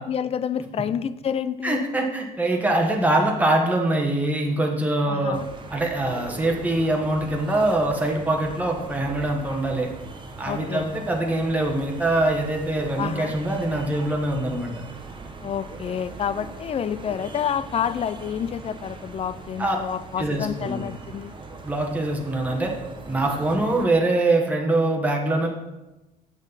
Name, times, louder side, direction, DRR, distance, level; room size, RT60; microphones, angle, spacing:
voice 1, 0.0-1.8 5.1-5.5 10.5-10.9 13.0-13.3 15.4-21.4, left 8 dB, 35° left, 15 dB, 0.4 m, -29 dB
voice 2, 1.6-5.4 5.7-9.9 10.4-14.7 19.6-19.8 20.2-20.8 21.6-22.7 23.1-25.5, right 2 dB, 10° right, 0 dB, 1.3 m, -23 dB
sound 1, 5.3-23.9, right 3 dB, 30° right, 1.1 m, -40 dB
7.5 x 6.3 x 4.1 m, 1.0 s
cardioid pair, 110°, 17 cm